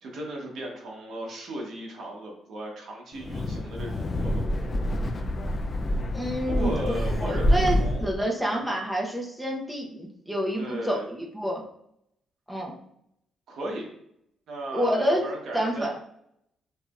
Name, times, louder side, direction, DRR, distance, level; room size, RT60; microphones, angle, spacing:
voice 1, 0.0-4.5 6.5-8.1 8.4-8.7 10.6-11.0 13.5-13.9 14.5-15.9, right 1 dB, 65° right, -1 dB, 1.2 m, -36 dB
Wind, 3.1-8.2, equal, 30° left, 0.5 m, -27 dB
voice 2, 6.1-6.9 7.2-11.6 12.5-12.7 14.7-15.3 15.5-15.9, equal, 5° right, -1 dB, 1.0 m, -28 dB
5.9 x 2.9 x 2.5 m, 0.73 s
cardioid pair, 90°, 0 cm